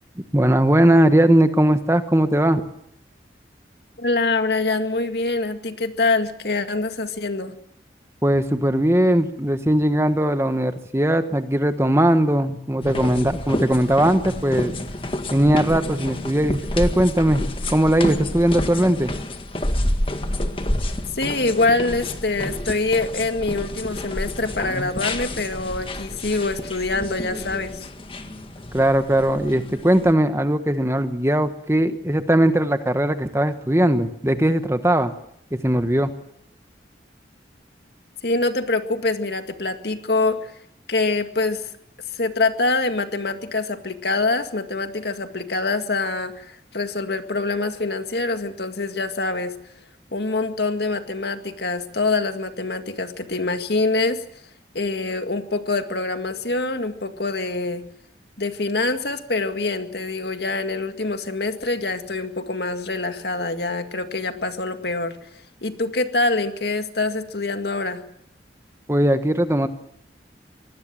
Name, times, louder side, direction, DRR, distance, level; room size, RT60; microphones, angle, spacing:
voice 1, 0.2-2.6 8.2-14.7 15.3-19.1 28.7-35.1 35.6-36.1 68.9-69.7, right 1 dB, 15° right, 9 dB, 1.2 m, -19 dB
voice 2, 4.0-7.5 21.1-27.8 38.2-40.5 40.9-41.6 42.1-49.5 50.1-54.2 54.7-57.9 58.4-65.2 65.6-68.0, left 3 dB, 65° left, 7 dB, 2.0 m, -25 dB
sound 1, 12.8-30.1, left 1 dB, 30° left, 1.8 m, -29 dB
25.0 x 19.5 x 7.7 m, 0.71 s
head